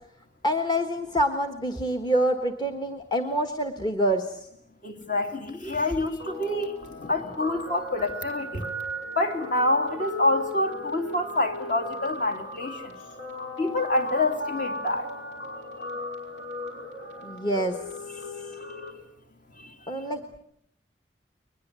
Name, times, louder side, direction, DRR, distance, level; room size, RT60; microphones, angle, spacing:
voice 1, 0.4-4.3 17.2-17.7 19.9-20.2, right 1 dB, 25° left, 4 dB, 1.3 m, -26 dB
voice 2, 4.8-8.7 9.1-12.9 13.6-15.1 18.7-18.8 19.6-19.7, left 2 dB, 50° left, 6 dB, 2.9 m, -27 dB
Guitar, 6.2-18.9, left 1 dB, 80° left, 5.8 m, -37 dB
22.0 x 21.0 x 8.2 m, 0.71 s
head